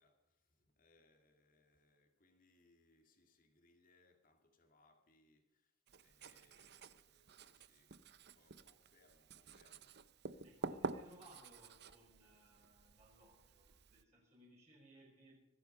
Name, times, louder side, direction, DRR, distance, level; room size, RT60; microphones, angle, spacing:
voice 1, 0.0-8.0 8.3-10.2, left 2 dB, 40° left, 2.4 m, -73 dB
Writing, 5.9-14.0, right 3 dB, 55° right, 0.7 m, -50 dB
voice 2, 10.4-15.3, right 1 dB, 35° right, 5.8 m, -63 dB
25.5 x 9.1 x 5.5 m
head